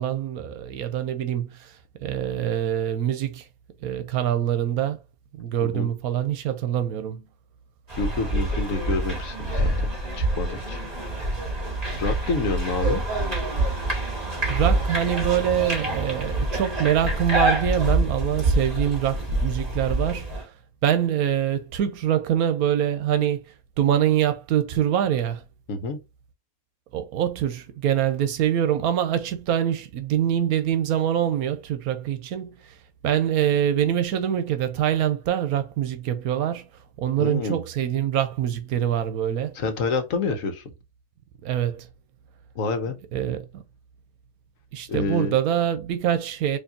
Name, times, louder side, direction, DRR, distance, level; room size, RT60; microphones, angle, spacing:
voice 1, 0.0-1.5 2.0-3.4 3.8-5.0 5.4-7.3 14.5-20.3 20.8-23.4 23.8-25.4 26.9-32.6 33.0-36.7 37.0-39.5 41.4-41.9 43.1-43.6 44.7-46.6, right 10 dB, 80° right, 1.1 m, -24 dB
voice 2, 5.6-5.9 8.0-9.7 10.1-10.8 12.0-13.0 25.7-26.0 37.2-37.6 39.5-40.7 42.6-43.0 44.9-45.3, left 3 dB, 65° left, 1.2 m, -28 dB
sound 1, 7.9-20.4, right 1 dB, 25° right, 1.9 m, -26 dB
4.5 x 2.9 x 2.8 m
omnidirectional pair, 1.5 m